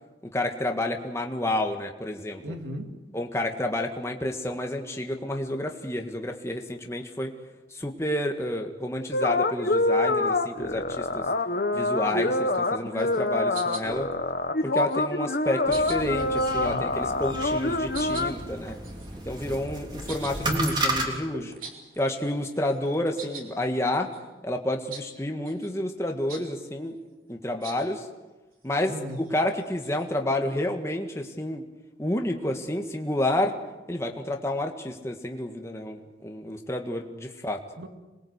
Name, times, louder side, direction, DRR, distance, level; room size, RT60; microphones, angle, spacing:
voice 1, 0.3-2.5 3.1-7.3 7.7-11.2 11.7-14.1 14.6-18.8 19.2-21.5 22.0-24.1 24.4-27.0 27.3-28.1 28.6-28.9 29.3-31.7 32.0-33.6 33.9-37.6, left 1 dB, 15° left, 3 dB, 1.7 m, -30 dB
voice 2, 2.4-3.0 16.6-16.9 21.1-21.6 24.0-24.1 28.9-29.3 37.8-37.9, equal, 75° right, 5 dB, 2.8 m, -37 dB
sound 1, 9.1-18.3, left 2 dB, 55° left, 1.5 m, -26 dB
sound 2, 11.7-12.1 12.5-12.7 13.0-13.3 13.5-14.1 14.6-15.1 15.7-16.5 17.3-17.5 17.9-22.2 22.5-23.5 23.9-24.2 24.9-25.1 25.4-25.7 26.3-26.5 27.6-27.9 28.5-30.1, right 5 dB, 50° right, 4.1 m, -44 dB
sound 3, 15.7-21.1, right 1 dB, 25° right, 3.3 m, -33 dB
26.5 x 21.0 x 8.2 m, 1.1 s
head